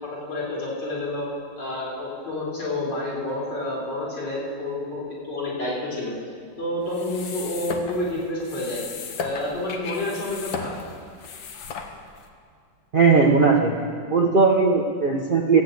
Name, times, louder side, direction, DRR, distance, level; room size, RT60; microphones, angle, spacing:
voice 1, 0.0-1.3 1.6-6.2 6.6-8.8 9.2-10.7, left 1 dB, 65° left, -6 dB, 4.2 m, -29 dB
sound 1, 6.9-12.3, left 5 dB, 80° left, 1.7 m, -35 dB
voice 2, 12.9-13.7 14.1-15.6, right 4 dB, 50° right, 2 dB, 0.6 m, -18 dB
14.0 x 8.5 x 7.9 m, 2.1 s
omnidirectional pair, 2.1 m